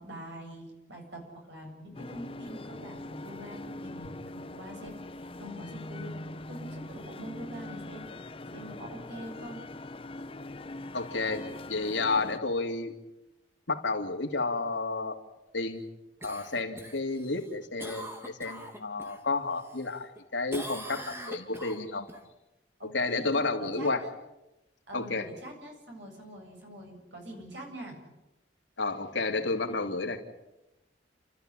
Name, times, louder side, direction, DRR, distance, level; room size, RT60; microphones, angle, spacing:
voice 1, 0.0-6.2 6.5-8.1 8.5-9.6 22.8-24.1 24.9-28.0 29.2-29.4 29.7-30.1, equal, 75° right, 2 dB, 7.8 m, -44 dB
sound 1, 1.9-12.4, left 2 dB, 30° left, 0.8 m, -42 dB
voice 2, 10.9-13.0 13.7-15.2 15.5-15.8 16.2-22.1 22.9-24.0 24.9-25.3 28.8-30.2, left 3 dB, 80° left, 4 dB, 2.7 m, -31 dB
Cough, 16.2-19.2 19.6-20.2 20.5-22.2 26.6-26.7, equal, 15° right, 2.5 m, -42 dB
29.5 x 14.0 x 9.9 m, 0.96 s
head